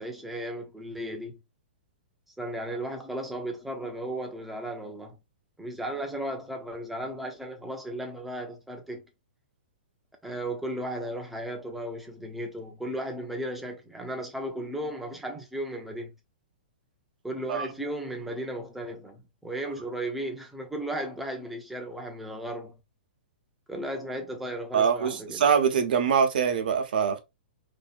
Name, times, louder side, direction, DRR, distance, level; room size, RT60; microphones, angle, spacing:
voice 1, 0.0-1.4 2.4-5.2 5.6-9.0 10.2-16.1 17.2-22.8 23.7-25.4, right 1 dB, ahead, 0.4 m, -35 dB
voice 2, 24.7-27.2, right 7 dB, 60° right, 0.6 m, -23 dB
2.6 x 2.2 x 2.4 m
hypercardioid pair, 165°, 5 cm